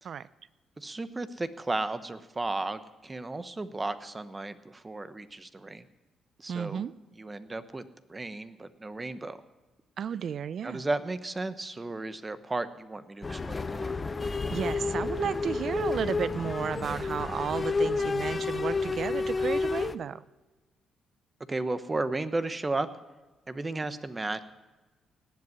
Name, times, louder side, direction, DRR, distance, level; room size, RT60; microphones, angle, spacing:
voice 1, 0.8-5.8 6.4-6.8 7.2-9.4 10.6-14.0 21.5-22.9 23.5-24.4, right 2 dB, 20° right, 12 dB, 1.0 m, -34 dB
voice 2, 6.5-6.9 10.0-10.8 14.5-20.2, right 8 dB, 60° right, 18 dB, 0.5 m, -33 dB
sound 1, 13.2-20.0, left 4 dB, 30° left, 0.7 m, -30 dB
18.0 x 8.0 x 9.7 m, 1.2 s
cardioid pair, 90°, 0 cm